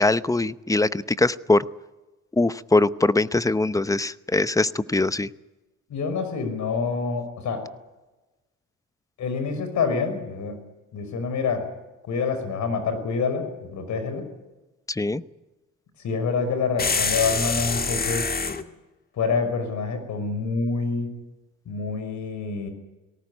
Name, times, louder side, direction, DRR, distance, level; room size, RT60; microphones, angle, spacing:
voice 1, 0.0-1.7 2.3-5.3 14.9-15.2, left 2 dB, 10° left, 15 dB, 0.8 m, -22 dB
voice 2, 5.9-7.7 9.2-10.6 10.9-11.7 12.0-14.3 16.0-18.3 19.1-21.2 21.7-22.7, left 4 dB, 70° left, 9 dB, 5.4 m, -27 dB
sound 1, 16.8-18.6, left 4 dB, 30° left, 1.7 m, -25 dB
19.5 x 17.5 x 9.9 m, 1.1 s
cardioid pair, 90°, 30 cm